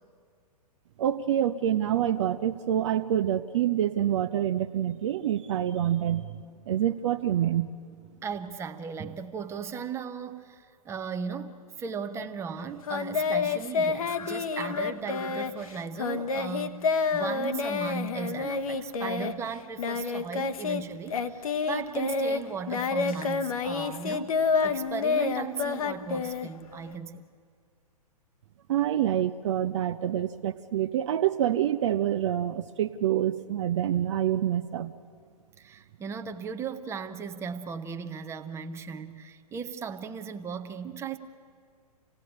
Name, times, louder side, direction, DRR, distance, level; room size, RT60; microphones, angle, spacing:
voice 1, 1.0-6.4 6.7-7.7 28.7-34.9, right 11 dB, 45° right, 10 dB, 0.7 m, -26 dB
voice 2, 8.2-24.3 24.6-27.2 35.6-41.2, right 6 dB, 15° right, 7 dB, 0.9 m, -37 dB
Singing, 12.9-20.8 21.1-26.9, left 5 dB, 60° left, 1.1 m, -29 dB
27.0 x 17.0 x 8.6 m, 2.1 s
figure-of-eight pair, 115°, 20 cm